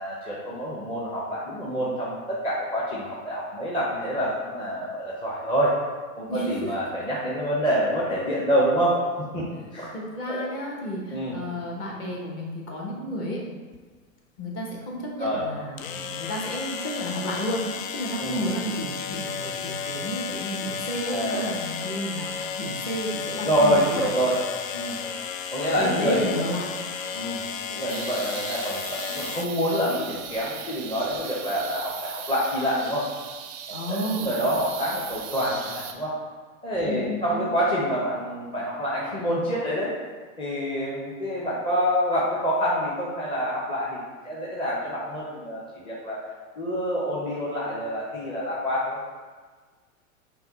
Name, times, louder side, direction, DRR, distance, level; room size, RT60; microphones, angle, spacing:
voice 1, 0.0-5.8 6.2-9.0 9.3-9.5 9.7-9.9 10.3-10.5 11.1-11.4 15.2-15.4 18.2-18.4 21.1-21.5 23.4-24.4 24.7-25.0 25.5-26.4 27.1-27.4 27.7-33.1 33.7-36.2 36.6-39.9 40.4-44.0 44.2-46.2 46.6-49.0, equal, 15° left, -6 dB, 0.6 m, -27 dB
voice 2, 6.3-6.7 9.5-9.7 9.9-13.4 14.4-24.1 25.8-26.7 33.7-34.3 36.8-37.5, equal, 30° left, -2 dB, 1.2 m, -32 dB
sound 1, 13.7-13.8 15.8-29.5, left 6 dB, 75° left, 0.5 m, -33 dB
sound 2, 27.9-35.9, right 8 dB, 30° right, 0.4 m, -38 dB
5.5 x 2.3 x 3.9 m, 1.5 s
hypercardioid pair, 105°, 40 cm